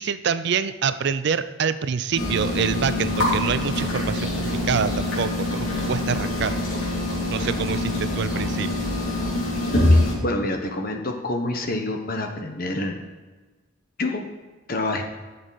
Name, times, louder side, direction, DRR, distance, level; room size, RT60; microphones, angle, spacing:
voice 1, 0.0-6.6 7.3-8.9, right 6 dB, 55° right, 13 dB, 0.4 m, -26 dB
sound 1, 2.2-10.1, left 1 dB, 80° left, 3.5 m, -24 dB
voice 2, 9.9-13.0 14.0-14.2 14.7-15.0, left 2 dB, 45° left, 4 dB, 1.1 m, -27 dB
11.0 x 7.0 x 4.1 m, 1.3 s
head